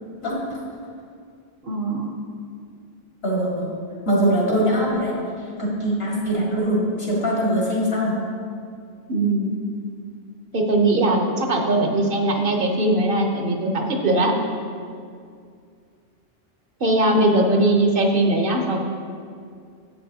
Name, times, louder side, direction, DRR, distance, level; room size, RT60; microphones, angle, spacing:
voice 1, 0.2-0.6 3.2-3.7 4.0-5.1 5.6-8.2, equal, 75° left, -4 dB, 2.1 m, -22 dB
voice 2, 1.6-2.1 9.1-9.5 10.5-14.3 16.8-18.8, right 2 dB, 60° right, 2 dB, 1.0 m, -20 dB
10.0 x 8.3 x 2.8 m, 2.3 s
omnidirectional pair, 1.1 m